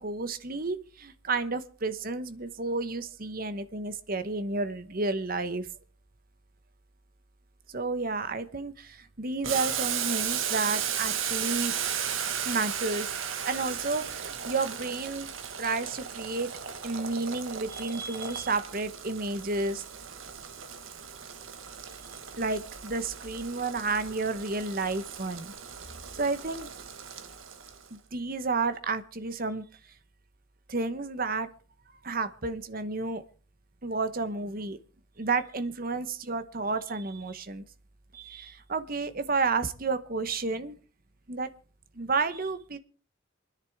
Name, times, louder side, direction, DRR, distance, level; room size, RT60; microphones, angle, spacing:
voice 1, 0.0-5.7 7.7-11.7 12.4-13.1 13.4-15.3 15.6-16.5 16.8-19.8 22.4-25.5 26.2-26.7 27.9-29.6 30.7-31.5 32.0-33.2 33.8-34.8 35.2-37.6 38.1-40.7 41.3-41.5 41.9-42.8, right 3 dB, 45° right, 11 dB, 1.1 m, -31 dB
Boiling, 9.4-27.9, right 8 dB, 80° right, 1.5 m, -35 dB
27.5 x 10.5 x 3.6 m, 0.38 s
head